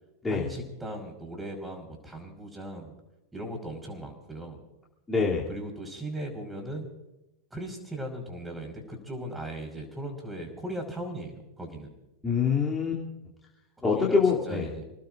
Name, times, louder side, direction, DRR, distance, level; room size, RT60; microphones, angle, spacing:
voice 1, 0.3-2.9 3.3-4.6 5.5-6.9 7.5-11.3 11.6-11.9 13.8-14.8, right 1 dB, 10° right, 3 dB, 5.3 m, -38 dB
voice 2, 5.1-5.4 12.2-13.0 13.8-14.7, left 5 dB, 10° left, -5 dB, 3.1 m, -25 dB
27.0 x 19.5 x 2.6 m, 0.95 s
figure-of-eight pair, 90°, 0 cm